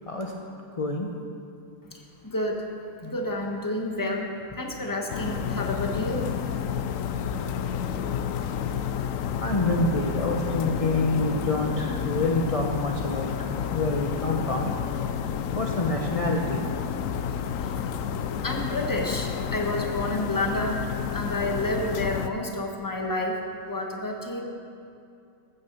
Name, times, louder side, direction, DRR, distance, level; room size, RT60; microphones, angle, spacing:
voice 1, 0.8-1.1 3.0-3.1 9.4-13.3 13.7-14.7 15.5-16.7, left 2 dB, 35° left, 1 dB, 0.5 m, -27 dB
voice 2, 2.2-2.6 3.0-6.2 17.6-17.7 18.4-20.8 21.1-23.4 23.7-24.4, left 1 dB, 10° left, 1 dB, 1.2 m, -29 dB
sound 1, 5.1-22.3, left 8 dB, 85° left, 0.7 m, -30 dB
15.0 x 9.5 x 6.9 m, 2.6 s
omnidirectional pair, 2.0 m